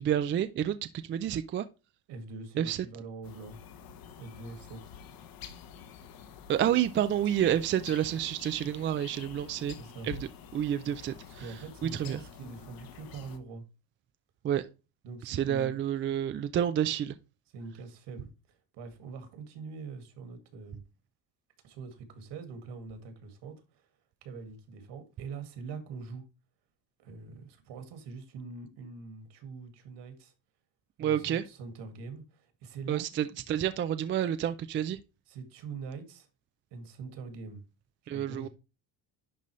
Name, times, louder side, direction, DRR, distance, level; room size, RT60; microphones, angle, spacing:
voice 1, 0.0-1.7 2.6-2.9 6.5-9.7 10.0-10.2 10.5-11.4 11.8-12.2 14.4-14.6 15.3-17.2 31.0-31.4 32.9-35.0 38.1-38.5, right 10 dB, 30° right, 0.3 m, -29 dB
voice 2, 2.1-3.6 4.2-4.8 9.8-10.1 11.4-13.6 15.0-15.7 16.0-16.1 17.5-20.8 21.6-23.9 24.2-26.2 27.0-30.3 31.0-33.1 35.3-36.3 36.7-37.6 38.1-38.5, right 4 dB, 65° right, 2.1 m, -43 dB
sound 1, 3.2-13.4, left 7 dB, 50° left, 1.1 m, -48 dB
11.0 x 4.0 x 3.1 m
cardioid pair, 155°, 45 cm